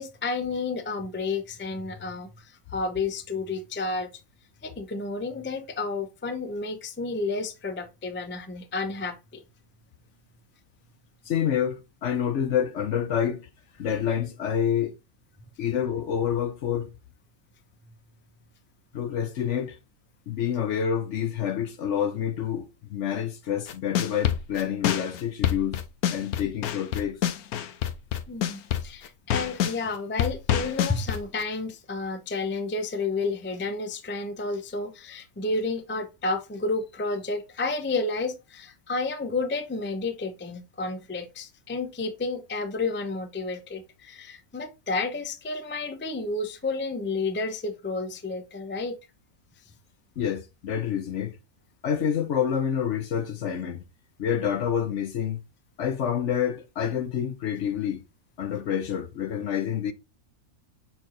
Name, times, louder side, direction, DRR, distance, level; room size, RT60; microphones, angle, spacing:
voice 1, 0.0-4.1 4.6-9.4 28.3-49.0, left 3 dB, 15° left, 0.3 m, -31 dB
voice 2, 11.3-13.5 13.8-14.9 15.6-16.9 18.9-19.8 20.3-25.8 26.1-27.2 50.2-51.4 51.8-53.8 54.2-55.4 55.8-58.0 58.4-59.9, left 8 dB, 60° left, 0.9 m, -28 dB
sound 1, 23.7-29.8 30.2-31.4, left 10 dB, 75° left, 1.2 m, -26 dB
6.1 x 4.5 x 3.8 m
omnidirectional pair, 1.6 m